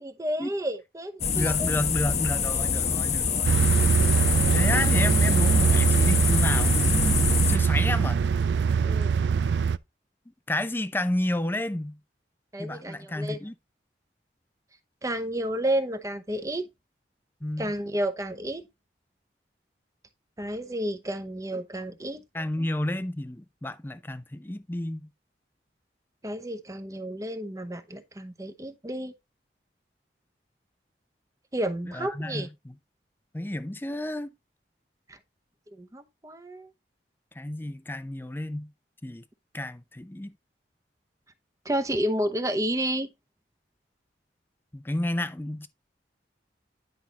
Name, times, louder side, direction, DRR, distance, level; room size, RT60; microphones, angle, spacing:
voice 1, 0.0-1.7 8.8-9.2 12.5-13.4 15.0-16.7 17.6-18.7 20.4-22.2 26.2-29.1 31.5-32.5 35.1-35.2 35.8-36.7 41.6-43.1, right 1 dB, 20° right, 0.8 m, -31 dB
sound 1, 1.2-7.6, left 6 dB, 40° left, 0.9 m, -26 dB
voice 2, 1.3-3.6 4.5-8.2 10.5-12.0 12.6-13.5 17.4-17.7 22.3-25.1 31.9-32.8 33.3-34.3 37.4-38.7 39.0-39.2 39.5-40.3 44.7-45.7, left 1 dB, 10° left, 0.5 m, -31 dB
sound 2, 3.4-9.8, right 6 dB, 80° right, 0.4 m, -22 dB
10.5 x 5.5 x 2.9 m
head